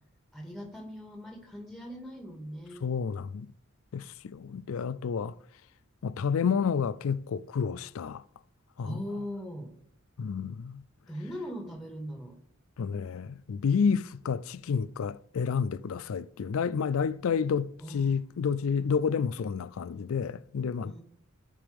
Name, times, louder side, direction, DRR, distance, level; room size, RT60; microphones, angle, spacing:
voice 1, 0.3-2.8 8.8-9.7 11.1-12.4 17.8-18.2 20.8-21.0, equal, ahead, 1.9 m, -40 dB
voice 2, 2.8-3.5 3.9-5.4 6.0-8.2 8.8-9.0 10.2-10.8 12.8-20.9, left 6 dB, 75° left, 0.4 m, -30 dB
14.5 x 5.1 x 3.5 m
head